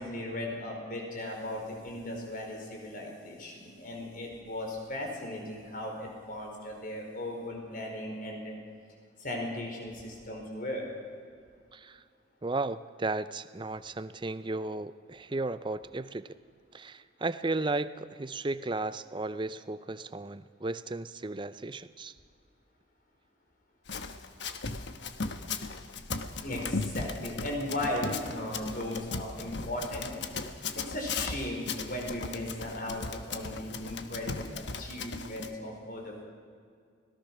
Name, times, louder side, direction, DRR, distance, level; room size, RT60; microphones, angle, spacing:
voice 1, 0.0-8.5 9.2-10.9 26.4-30.2 30.7-36.2, left 1 dB, 45° left, 1 dB, 4.7 m, -37 dB
voice 2, 11.7-12.0 12.4-16.3 16.7-22.1, right 2 dB, 25° right, 14 dB, 0.6 m, -34 dB
Run, 23.9-35.5, left 4 dB, 70° left, 1.2 m, -37 dB
25.0 x 18.0 x 6.0 m, 2.2 s
head